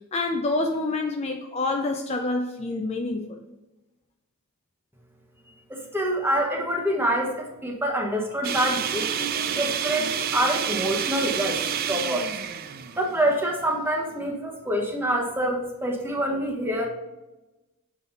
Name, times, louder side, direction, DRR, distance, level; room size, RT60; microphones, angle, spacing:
voice 1, 0.1-3.4, left 2 dB, 30° left, 3 dB, 0.5 m, -27 dB
voice 2, 5.9-11.6 11.9-12.3 13.0-16.9, right 1 dB, 10° right, 0 dB, 1.1 m, -26 dB
sound 1, 8.4-13.6, right 8 dB, 45° right, 0.4 m, -29 dB
7.3 x 4.0 x 4.0 m, 1.0 s
head